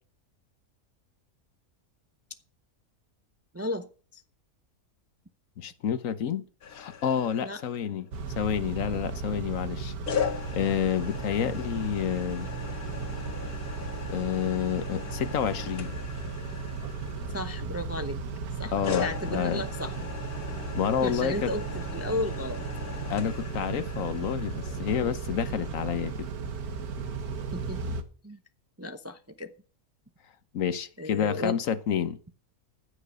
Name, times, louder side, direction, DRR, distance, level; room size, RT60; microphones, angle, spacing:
voice 1, 3.5-3.9 4.1-4.2 7.4-7.6 17.3-18.2 18.6-19.9 21.0-22.6 27.5-27.9 28.2-28.4 28.8-29.5 31.0-31.5, left 1 dB, 15° right, 0.5 m, -34 dB
voice 2, 5.6-6.4 6.7-9.9 10.5-12.5 14.1-15.9 18.7-19.6 20.7-21.5 23.1-26.3 30.5-32.2, left 8 dB, 65° left, 1.2 m, -29 dB
sound 1, 6.6-8.1 10.1-17.9 18.8-25.9, left 7 dB, 85° left, 1.9 m, -39 dB
Car / Idling / Accelerating revving vroom, 8.1-28.0, right 4 dB, 80° right, 1.8 m, -35 dB
15.0 x 6.5 x 6.7 m
omnidirectional pair, 1.5 m